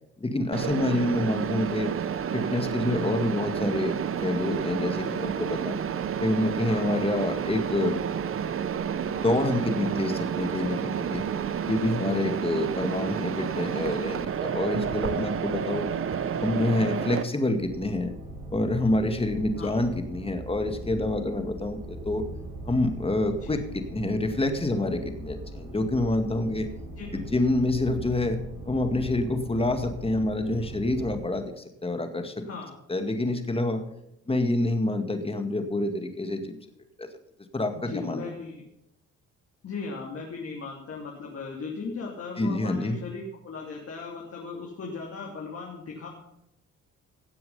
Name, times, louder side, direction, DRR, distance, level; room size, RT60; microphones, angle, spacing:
voice 1, 0.2-1.9 2.3-5.8 6.2-8.0 9.2-11.2 11.7-15.9 16.3-18.1 18.5-22.2 22.6-26.7 27.1-28.4 28.7-32.5 32.9-33.8 34.3-36.6 37.0-37.1 37.5-38.3 42.4-43.0, left 2 dB, 20° left, 6 dB, 2.0 m, -27 dB
Mechanisms, 0.5-17.2, right 7 dB, 45° right, 0.9 m, -30 dB
sound 1, 17.5-31.2, right 1 dB, 80° right, 5.3 m, -40 dB
voice 2, 27.0-27.3 32.4-32.7 37.7-38.6 39.6-46.1, left 4 dB, 50° left, -2 dB, 3.0 m, -37 dB
16.5 x 7.7 x 5.6 m, 0.80 s
cardioid pair, 90°, 30 cm